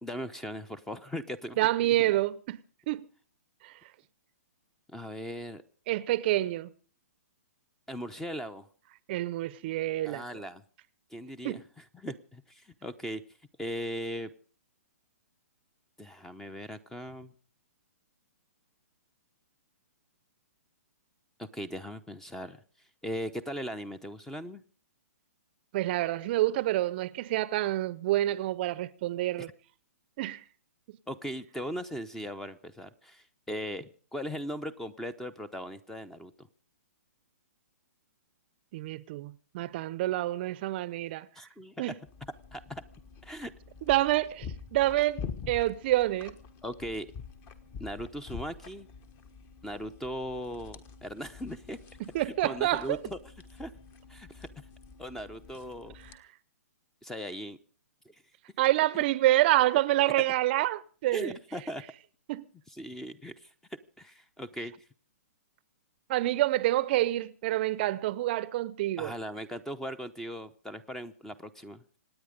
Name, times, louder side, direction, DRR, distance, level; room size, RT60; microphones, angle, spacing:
voice 1, 0.0-2.1 4.9-5.6 7.9-8.7 10.0-10.6 11.1-13.2 13.6-14.3 16.0-17.3 21.4-22.6 23.0-24.6 31.1-36.5 41.4-41.9 42.5-42.8 43.2-43.5 46.6-47.1 47.8-48.9 49.6-51.8 52.2-53.2 53.5-53.7 54.1-54.5 55.0-55.9 57.0-57.6 58.1-58.2 60.2-60.3 61.1-61.8 62.7-63.5 64.0-64.7 69.0-72.0, equal, 5° left, 0.8 m, -39 dB
voice 2, 1.6-2.6 2.9-3.0 3.6-3.7 5.9-6.7 9.1-10.2 11.4-11.6 25.7-29.5 30.2-30.4 38.7-41.3 41.8-41.9 43.9-46.3 52.0-53.0 58.6-61.4 62.3-62.4 66.1-69.1, right 15 dB, 40° right, 0.7 m, -27 dB
sound 1, 42.1-56.2, left 6 dB, 25° left, 1.3 m, -46 dB
26.0 x 9.5 x 5.2 m
hypercardioid pair, 145°, 9 cm